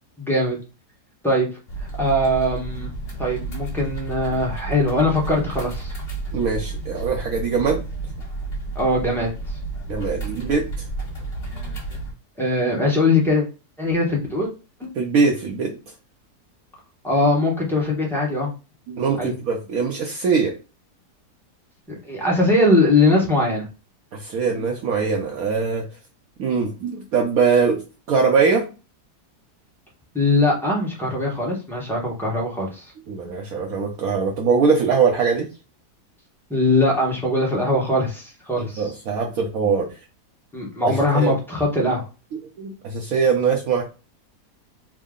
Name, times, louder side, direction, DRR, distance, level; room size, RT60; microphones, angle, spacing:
voice 1, 0.2-0.6 1.2-1.5 2.0-2.9 3.2-5.9 8.7-9.3 12.4-13.4 13.8-14.5 14.8-14.9 17.0-18.5 19.2-19.3 22.0-23.6 30.1-32.8 36.5-38.9 40.5-42.1, left 2 dB, ahead, -4 dB, 0.7 m, -21 dB
sound 1, 1.7-12.1, right 3 dB, 35° left, 1.8 m, -31 dB
voice 2, 6.3-7.8 9.9-10.7 14.9-15.7 18.9-20.5 24.1-25.9 26.4-27.8 28.1-28.7 33.1-35.5 38.6-39.9 40.8-41.3 42.3-43.8, right 5 dB, 70° right, 0 dB, 1.0 m, -22 dB
3.6 x 2.1 x 3.6 m, 0.32 s
omnidirectional pair, 1.7 m